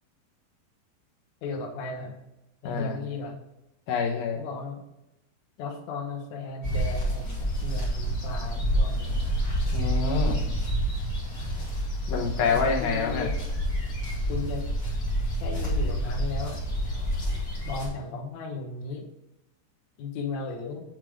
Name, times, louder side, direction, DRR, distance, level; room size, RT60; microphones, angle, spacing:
voice 1, 1.4-2.2 2.6-3.4 4.3-4.8 5.6-9.1 12.4-13.5 14.3-14.7 15.4-16.6 17.6-19.0 20.0-20.8, left 4 dB, 90° left, 0 dB, 1.5 m, -35 dB
voice 2, 3.9-4.4 9.7-10.4 12.1-13.3, left 5 dB, 70° left, -1 dB, 2.6 m, -26 dB
sound 1, 6.6-17.9, equal, 35° left, 2.0 m, -28 dB
7.8 x 3.8 x 4.7 m, 0.91 s
omnidirectional pair, 5.1 m